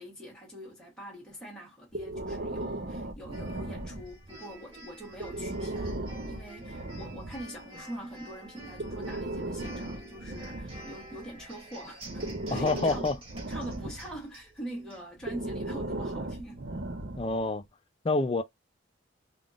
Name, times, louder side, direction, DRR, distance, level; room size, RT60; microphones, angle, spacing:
voice 1, 0.0-16.7, right 1 dB, 5° left, 1.1 m, -44 dB
Breathing, 1.9-4.4 5.1-7.5 8.6-11.4 12.0-14.2 15.2-17.5, right 1 dB, 50° right, 0.6 m, -37 dB
sound 1, 3.3-15.0, right 1 dB, 30° right, 1.5 m, -49 dB
voice 2, 12.5-13.2 17.2-17.6 18.0-18.4, left 3 dB, 25° left, 0.4 m, -27 dB
3.5 x 2.5 x 2.4 m
head